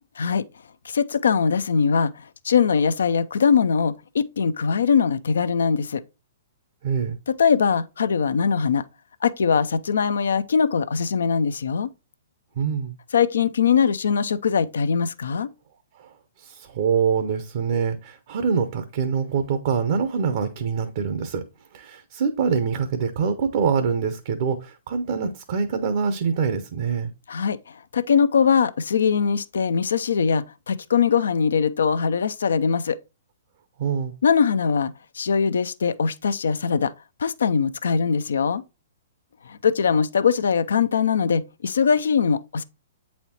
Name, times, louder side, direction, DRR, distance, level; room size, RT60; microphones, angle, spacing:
voice 1, 0.8-2.1 2.4-6.0 7.3-8.8 9.2-11.9 13.1-15.5 27.3-33.0 34.2-36.9 37.2-38.6 39.5-42.6, left 6 dB, 70° left, 0.5 m, -21 dB
voice 2, 6.8-7.2 12.6-12.9 16.0-21.4 21.7-27.1 33.8-34.1, right 6 dB, 55° right, 0.7 m, -25 dB
8.1 x 4.2 x 2.9 m
figure-of-eight pair, 120°, 0 cm